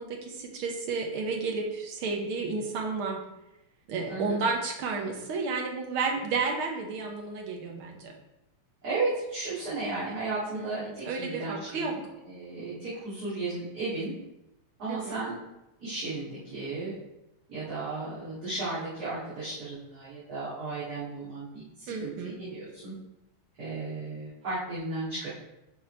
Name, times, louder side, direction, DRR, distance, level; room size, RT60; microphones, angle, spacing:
voice 1, 0.0-3.2 3.9-8.1 10.5-12.0 14.9-15.2 21.9-22.4, right 4 dB, 80° right, 2 dB, 1.9 m, -32 dB
voice 2, 4.1-4.4 8.8-14.1 14.8-15.4 15.8-16.9 17.5-22.9 23.6-25.3, right 3 dB, 45° right, -12 dB, 2.6 m, -34 dB
5.3 x 5.0 x 4.4 m, 0.91 s
omnidirectional pair, 2.3 m